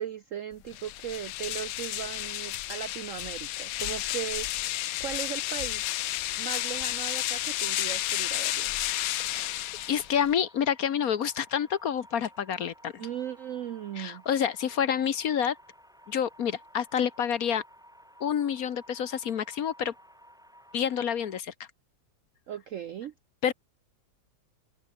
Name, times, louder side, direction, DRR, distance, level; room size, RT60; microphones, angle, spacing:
voice 1, 0.0-4.5 5.0-5.8 6.4-8.7 13.0-14.2 22.5-23.1, right 10 dB, 70° right, 0.7 m, -37 dB
sound 1, 0.7-10.3, left 15 dB, 75° left, 0.8 m, -32 dB
sound 2, 6.4-21.4, equal, ahead, 5.1 m, -55 dB
voice 2, 9.9-12.9 14.0-15.6 16.1-17.6 18.2-19.9 20.7-21.5 23.4-23.5, left 8 dB, 55° left, 1.3 m, -28 dB
omnidirectional pair, 2.0 m